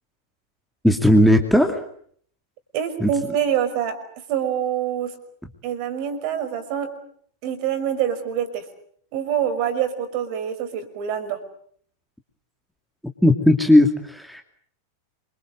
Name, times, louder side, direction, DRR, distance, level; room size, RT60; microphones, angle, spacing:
voice 1, 0.8-1.8 3.0-3.1 13.2-14.4, left 1 dB, ahead, 4 dB, 2.6 m, -16 dB
voice 2, 2.7-4.0 4.3-5.1 5.6-6.9 7.4-8.6 9.1-11.4, right 9 dB, 45° right, 9 dB, 5.6 m, -25 dB
28.0 x 24.0 x 7.9 m, 0.63 s
figure-of-eight pair, 90°, 0 cm